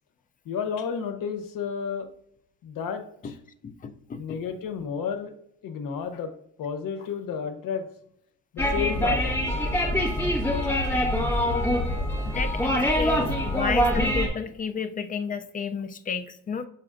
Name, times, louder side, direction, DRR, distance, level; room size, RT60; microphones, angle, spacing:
voice 1, 0.5-2.1 2.6-3.4 4.2-5.3 5.6-6.3 6.6-7.9 8.5-9.5 10.6-11.0 11.5-11.7 12.2-12.3, left 6 dB, 80° left, 8 dB, 0.9 m, -32 dB
voice 2, 3.6-4.4 12.3-16.7, left 6 dB, 25° left, 9 dB, 0.4 m, -32 dB
sound 1, 8.6-14.3, equal, 5° left, 1.4 m, -24 dB
6.7 x 5.9 x 2.5 m, 0.72 s
cardioid pair, 145°, 33 cm